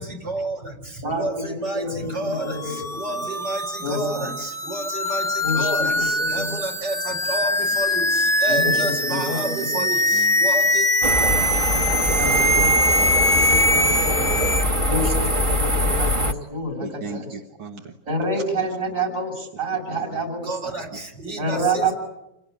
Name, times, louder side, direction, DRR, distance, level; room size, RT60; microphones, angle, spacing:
voice 1, 0.0-10.9 20.4-21.9, right 2 dB, 60° right, 2 dB, 5.5 m, -31 dB
voice 2, 1.7-2.8 3.1-3.2 3.8-4.3 5.4-6.4 8.5-9.7 12.2-14.3 14.9-17.3 18.1-20.7 21.4-21.9, right 1 dB, 40° right, 1 dB, 7.5 m, -28 dB
sound 1, 2.4-14.6, left 1 dB, 5° left, 0.3 m, -22 dB
voice 3, 9.7-10.3 14.6-14.7 15.2-16.0 16.8-18.0 18.6-18.7 19.4-19.5 19.9-20.0 20.9-21.0, right 4 dB, 85° right, 3 dB, 2.5 m, -38 dB
sound 2, 11.0-16.3, equal, 20° right, 1.1 m, -22 dB
28.5 x 18.0 x 9.9 m, 0.90 s
omnidirectional pair, 2.1 m